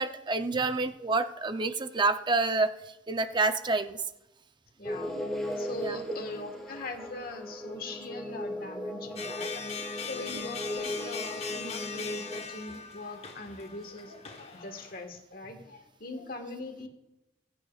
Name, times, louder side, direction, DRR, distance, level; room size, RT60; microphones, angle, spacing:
voice 1, 0.0-4.0 5.8-6.0, right 3 dB, 25° right, 9 dB, 0.6 m, -28 dB
voice 2, 4.8-5.1 5.6-16.9, left 2 dB, 55° left, 5 dB, 1.5 m, -41 dB
sound 1, 4.8-12.4, left 1 dB, 5° left, 2.1 m, -37 dB
sound 2, 9.2-15.0, left 6 dB, 35° left, 1.1 m, -40 dB
20.0 x 9.2 x 2.4 m, 0.95 s
head